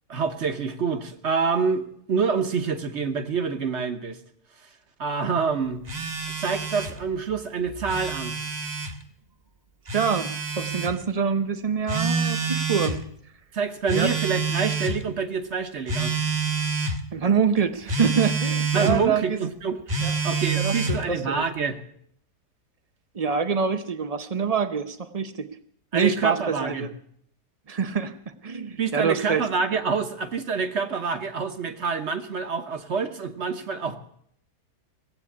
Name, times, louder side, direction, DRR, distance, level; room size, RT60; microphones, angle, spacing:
voice 1, 0.1-4.2 5.0-5.8 6.4-8.3 13.5-16.2 18.7-19.8 20.2-21.8 25.9-26.9 28.8-34.0, right 5 dB, 50° right, 7 dB, 1.2 m, -27 dB
Telephone, 5.9-7.0 7.7-8.9 9.9-10.9 11.9-13.0 13.9-15.0 15.9-17.0 17.9-19.0 19.9-21.0, right 4 dB, 30° right, 1.0 m, -27 dB
voice 2, 9.9-10.3 10.6-13.0 13.9-14.1 17.1-19.4 20.0-20.1 20.6-21.4 23.1-25.5 25.9-26.9 27.7-29.5, right 6 dB, 80° right, 10 dB, 0.3 m, -25 dB
17.5 x 8.3 x 8.5 m, 0.70 s
omnidirectional pair, 1.7 m